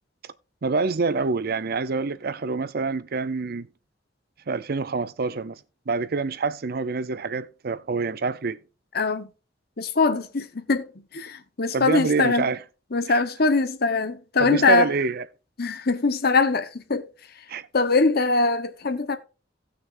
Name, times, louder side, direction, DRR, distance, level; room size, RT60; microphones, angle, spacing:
voice 1, 0.6-3.7 4.5-5.6 5.9-8.6 11.7-12.6 13.1-13.2 14.4-15.2 17.5-17.7, right 4 dB, 55° right, 0.6 m, -26 dB
voice 2, 8.9-9.3 9.8-10.9 11.1-12.5 12.9-14.9 15.6-17.1 17.7-19.2, left 3 dB, 55° left, 1.0 m, -22 dB
17.0 x 6.2 x 2.6 m
head